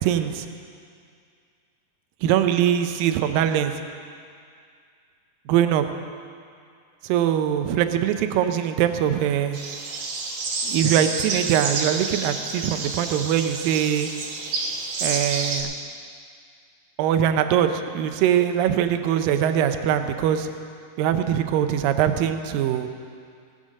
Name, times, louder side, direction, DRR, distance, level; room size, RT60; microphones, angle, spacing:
voice 1, 0.0-0.5 2.2-3.7 5.5-5.9 7.0-9.6 10.6-14.1 15.0-15.7 17.0-20.5 21.0-22.9, right 10 dB, 80° right, 8 dB, 2.4 m, -22 dB
sound 1, 9.5-15.6, right 3 dB, 60° right, 2.2 m, -29 dB
18.5 x 7.8 x 6.4 m, 2.3 s
omnidirectional pair, 4.1 m